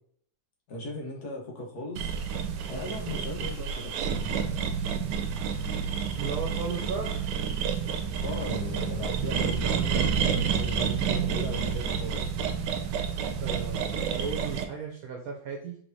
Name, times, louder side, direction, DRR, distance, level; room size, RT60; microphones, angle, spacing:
voice 1, 0.7-2.1 2.5-4.4 8.2-12.3, left 1 dB, 70° left, -1 dB, 1.6 m, -38 dB
sound 1, 2.0-14.6, right 7 dB, 90° right, 1.2 m, -29 dB
voice 2, 6.2-7.3 13.4-15.8, right 5 dB, 65° right, 0 dB, 1.1 m, -35 dB
4.6 x 3.5 x 2.6 m, 0.62 s
omnidirectional pair, 1.8 m